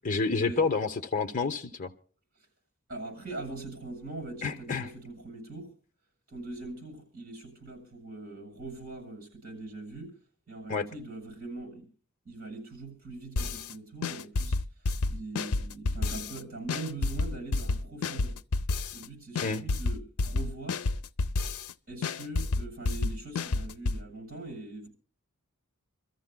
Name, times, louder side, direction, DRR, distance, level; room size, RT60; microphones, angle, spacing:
voice 1, 0.0-1.9 4.4-4.9 10.7-10.9 19.4-19.6, left 4 dB, 35° left, 0.8 m, -29 dB
voice 2, 2.9-5.7 6.3-10.1 10.5-11.9 12.2-14.6 15.1-18.4 18.9-20.9 21.9-24.9, right 2 dB, 45° right, 7.0 m, -42 dB
sound 1, 13.4-13.7 14.0-16.4 16.7-19.1 19.4-21.7 22.0-24.0, left 3 dB, 80° left, 0.5 m, -30 dB
27.5 x 14.0 x 2.2 m
head